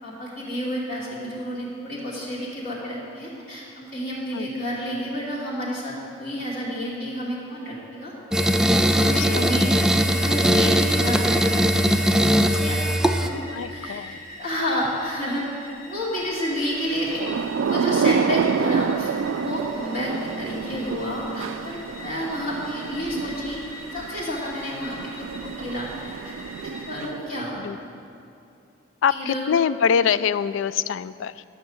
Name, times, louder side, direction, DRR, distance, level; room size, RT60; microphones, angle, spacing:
voice 1, 0.0-8.1 8.8-9.7 10.0-12.0 12.3-17.2 17.6-23.6 23.9-27.6 29.1-29.5, equal, 50° left, -9 dB, 2.6 m, -30 dB
sound 1, 8.3-13.3, equal, 5° right, 0.3 m, -20 dB
voice 2, 9.0-9.4 13.5-14.2 27.6-27.8 29.0-31.4, left 7 dB, 80° left, 16 dB, 0.3 m, -24 dB
sound 2, 9.4-27.1, left 1 dB, 30° left, 1.7 m, -43 dB
Thunder / Rain, 16.9-27.4, right 6 dB, 90° right, 0.3 m, -28 dB
12.0 x 5.7 x 7.9 m, 2.6 s
head